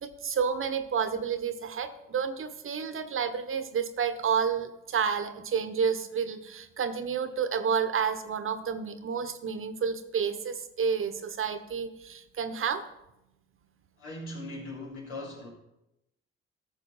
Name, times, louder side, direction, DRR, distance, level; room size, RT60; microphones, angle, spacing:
voice 1, 0.0-12.8, right 6 dB, 45° right, 11 dB, 1.1 m, -30 dB
voice 2, 14.0-15.5, left 1 dB, 70° left, -2 dB, 3.3 m, -39 dB
14.0 x 6.4 x 5.5 m, 0.89 s
hypercardioid pair, 50°, 29 cm